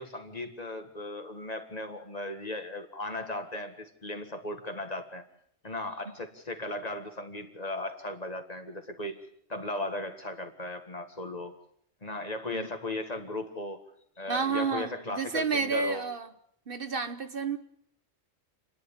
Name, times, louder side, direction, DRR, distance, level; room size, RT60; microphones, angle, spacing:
voice 1, 0.0-5.2 5.6-9.2 9.5-11.6 12.0-13.8 14.2-16.0, left 2 dB, 35° left, 1.9 m, -37 dB
voice 2, 14.3-16.3 16.7-17.6, right 4 dB, 55° right, 1.2 m, -30 dB
28.5 x 10.5 x 8.8 m
omnidirectional pair, 1.2 m